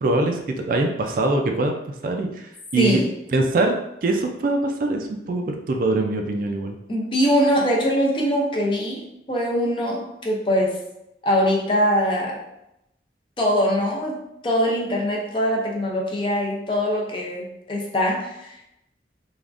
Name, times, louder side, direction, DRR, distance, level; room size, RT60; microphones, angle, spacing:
voice 1, 0.0-1.7 2.0-3.0 3.3-3.7 4.0-6.8, right 2 dB, 50° right, 4 dB, 0.3 m, -23 dB
voice 2, 6.9-10.8 11.2-12.4 13.4-14.2 14.4-18.7, equal, 30° left, -1 dB, 0.5 m, -22 dB
3.4 x 2.4 x 2.4 m, 0.85 s
head